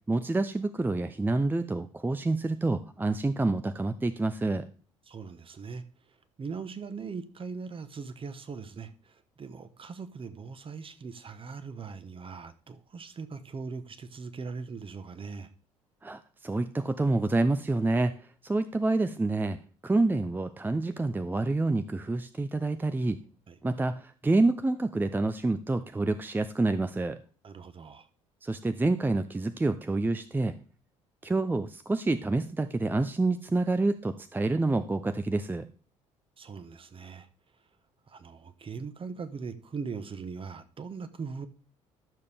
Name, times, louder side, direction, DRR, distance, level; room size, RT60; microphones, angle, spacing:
voice 1, 0.1-4.6 16.0-18.1 18.4-19.6 19.8-23.2 23.6-27.2 28.4-30.5 31.2-35.7, right 2 dB, 10° right, 0.6 m, -28 dB
voice 2, 5.1-15.5 23.5-23.6 27.4-28.1 36.4-37.3 38.1-41.5, right 5 dB, 35° right, 1.1 m, -40 dB
12.0 x 6.7 x 3.5 m
figure-of-eight pair, 55°, 16 cm